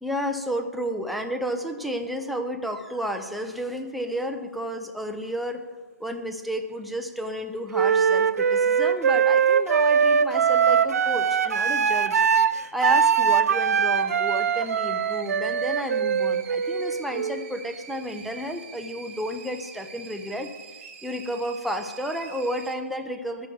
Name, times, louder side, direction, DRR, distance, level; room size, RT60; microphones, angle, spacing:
voice 1, 0.0-5.6 6.0-12.2 12.7-20.5 21.0-23.5, equal, ahead, 4 dB, 0.4 m, -31 dB
sound 1, 6.5-22.8, right 6 dB, 40° right, 1.3 m, -47 dB
Wind instrument woodwind instrument, 7.7-17.5, right 7 dB, 60° right, 0.4 m, -22 dB
12.0 x 4.8 x 6.0 m, 1.3 s
figure-of-eight pair, 140°, 9 cm